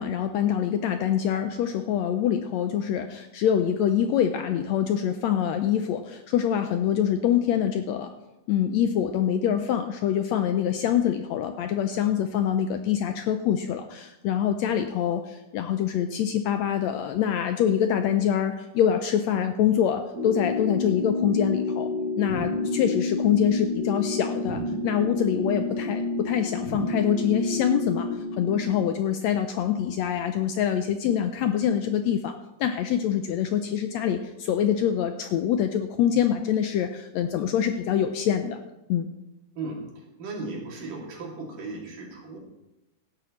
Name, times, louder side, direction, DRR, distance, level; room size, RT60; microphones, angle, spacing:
voice 1, 0.0-8.1 8.5-21.9 22.2-32.3 32.6-38.6 38.9-39.1, left 9 dB, 80° left, 7 dB, 1.6 m, -25 dB
sound 1, 20.1-28.8, left 3 dB, 60° right, 3.0 m, -29 dB
voice 2, 40.2-42.4, right 3 dB, 90° right, -2 dB, 4.3 m, -36 dB
17.0 x 11.0 x 3.1 m, 0.98 s
omnidirectional pair, 3.6 m